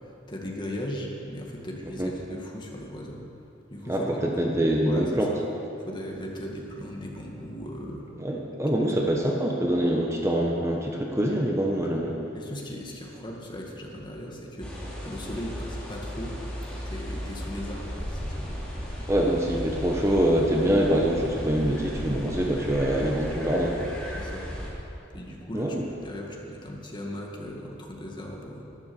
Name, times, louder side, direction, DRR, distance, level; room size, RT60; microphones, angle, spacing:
voice 1, 0.3-3.2 3.7-4.3 4.9-5.4 5.8-8.0 8.8-9.5 12.3-14.7 15.0-16.3 16.9-19.0 24.1-24.4 25.1-28.6, left 1 dB, 25° left, -1 dB, 1.8 m, -38 dB
voice 2, 3.9-5.3 8.2-12.1 19.1-23.9 25.5-25.9, right 1 dB, 15° right, -1 dB, 1.0 m, -25 dB
sound 1, 14.6-24.7, equal, 5° left, 2.8 m, -35 dB
12.0 x 11.0 x 7.0 m, 2.8 s
head